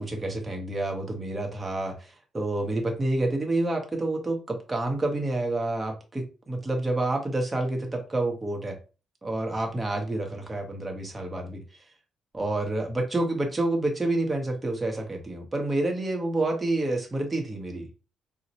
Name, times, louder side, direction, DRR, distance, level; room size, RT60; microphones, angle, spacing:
voice 1, 0.0-8.8 9.2-11.6 12.3-17.9, right 2 dB, 15° right, 0.7 m, -28 dB
4.0 x 2.1 x 2.7 m
cardioid pair, 130°, 0 cm